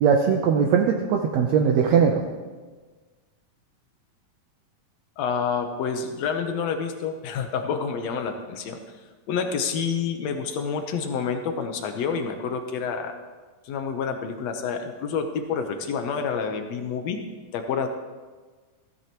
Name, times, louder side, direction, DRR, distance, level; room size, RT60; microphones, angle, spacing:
voice 1, 0.0-2.2, right 7 dB, 75° right, 2 dB, 1.7 m, -20 dB
voice 2, 5.2-8.8 9.3-13.1 13.6-17.2 17.5-17.9, left 6 dB, 70° left, 5 dB, 1.7 m, -28 dB
16.0 x 13.5 x 3.0 m, 1.4 s
omnidirectional pair, 4.0 m